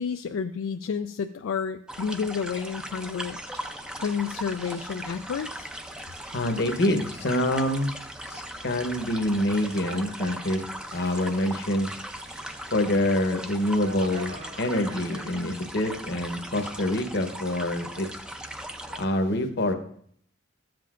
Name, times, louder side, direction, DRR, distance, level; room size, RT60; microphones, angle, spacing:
voice 1, 0.0-3.4 4.0-5.7 18.9-19.0, left 6 dB, 75° left, 7 dB, 0.3 m, -30 dB
sound 1, 1.9-19.0, right 1 dB, 5° right, 0.4 m, -39 dB
sound 2, 2.1-18.2, right 2 dB, 55° right, 1.8 m, -49 dB
voice 2, 6.3-7.9 8.3-10.6 10.9-11.9 12.7-18.1 19.0-19.7, left 1 dB, 55° left, 6 dB, 1.0 m, -26 dB
13.5 x 7.7 x 2.4 m, 0.63 s
head